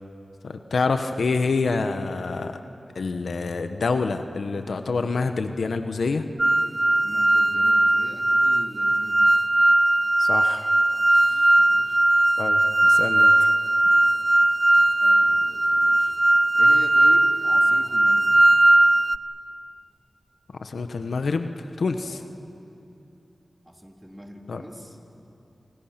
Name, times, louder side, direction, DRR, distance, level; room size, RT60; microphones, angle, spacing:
voice 1, 0.4-2.5 2.9-6.2 10.2-10.7 12.4-13.5 20.6-22.2 24.5-24.6, left 4 dB, 85° left, 7 dB, 1.1 m, -27 dB
sound 1, 6.4-19.2, right 2 dB, 30° right, 0.6 m, -19 dB
voice 2, 7.0-9.7 11.3-12.1 13.8-14.4 14.8-16.1 16.5-18.3 22.0-22.3 23.7-25.0, equal, 15° right, 1 dB, 3.5 m, -42 dB
29.5 x 27.5 x 6.0 m, 2.8 s
cardioid pair, 45°, 0 cm